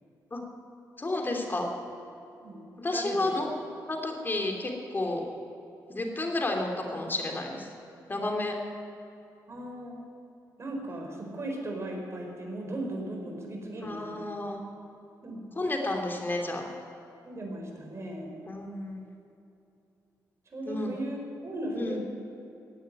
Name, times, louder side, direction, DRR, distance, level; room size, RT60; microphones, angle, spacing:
voice 1, 1.0-1.7 2.8-3.5 3.9-5.3 5.9-7.7 8.1-8.5 13.8-14.6 15.6-16.7 18.5-19.0 20.7-20.9 21.7-22.0, left 2 dB, 30° left, 2 dB, 3.1 m, -31 dB
voice 2, 2.9-3.3 7.9-8.0 9.5-10.0 10.6-14.3 15.2-15.4 17.2-18.4 20.5-21.2 21.4-22.0, right 1 dB, 40° right, 1 dB, 4.6 m, -37 dB
15.5 x 9.1 x 9.4 m, 2.8 s
cardioid pair, 75°, 7 cm